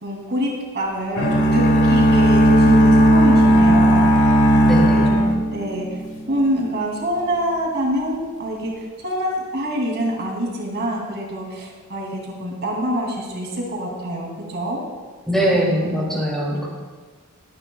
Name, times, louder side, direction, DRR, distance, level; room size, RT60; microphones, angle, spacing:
voice 1, 0.0-4.3 4.5-5.9 6.3-14.8 15.4-16.1, equal, 50° right, -2 dB, 2.9 m, -26 dB
sound 1, 1.2-6.1, equal, 60° left, 1.5 m, -15 dB
voice 2, 4.7-5.1 15.2-16.7, equal, ahead, -4 dB, 3.0 m, -21 dB
22.5 x 10.0 x 2.4 m, 1.5 s
head